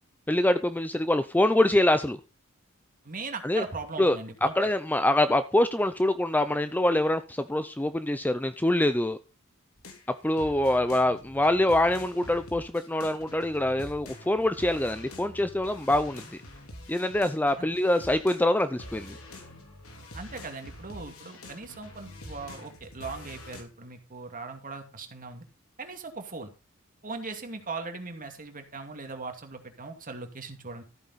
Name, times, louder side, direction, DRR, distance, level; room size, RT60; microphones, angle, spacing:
voice 1, 0.3-2.2 3.4-3.6 4.0-9.2 10.2-16.2 16.9-19.2, left 1 dB, 10° left, 0.5 m, -25 dB
voice 2, 3.0-4.7 17.6-17.7 20.1-25.4 25.8-26.5 27.0-30.8, right 3 dB, 40° right, 2.4 m, -39 dB
sound 1, 9.8-18.5 18.8-23.6, left 1 dB, 80° left, 3.6 m, -46 dB
14.0 x 8.7 x 4.1 m
head